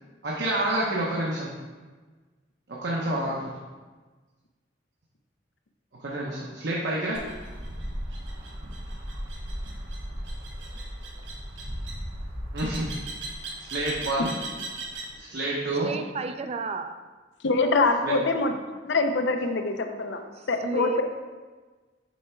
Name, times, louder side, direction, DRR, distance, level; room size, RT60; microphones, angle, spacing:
voice 1, 0.2-1.5 2.8-3.5 6.0-7.2 12.5-12.9 13.7-14.3 15.2-15.9 18.0-18.1, right 1 dB, 65° right, -4 dB, 0.9 m, -28 dB
sound 1, 7.1-15.2, right 1 dB, 80° right, 1.2 m, -36 dB
voice 2, 15.8-17.0 17.6-17.8 20.4-21.0, right 4 dB, 35° right, 8 dB, 0.3 m, -32 dB
voice 3, 17.4-18.5 18.9-20.2 20.5-21.0, left 3 dB, 70° left, 6 dB, 0.6 m, -24 dB
7.2 x 3.4 x 4.4 m, 1.4 s
head